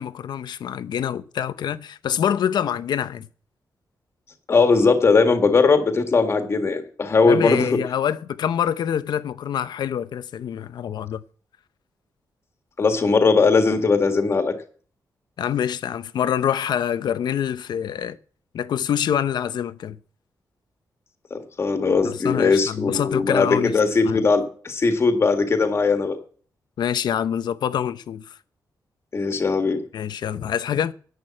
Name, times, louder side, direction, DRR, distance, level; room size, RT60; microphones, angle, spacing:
voice 1, 0.0-3.3 7.2-11.2 15.4-18.2 18.5-20.0 22.0-23.7 24.0-24.2 26.8-28.4 29.9-30.9, left 9 dB, 90° left, 0.8 m, -25 dB
voice 2, 4.5-7.8 12.8-14.6 21.3-26.2 29.1-29.8, left 4 dB, 40° left, 1.8 m, -19 dB
11.0 x 8.5 x 7.4 m
wide cardioid pair, 155°, 7 cm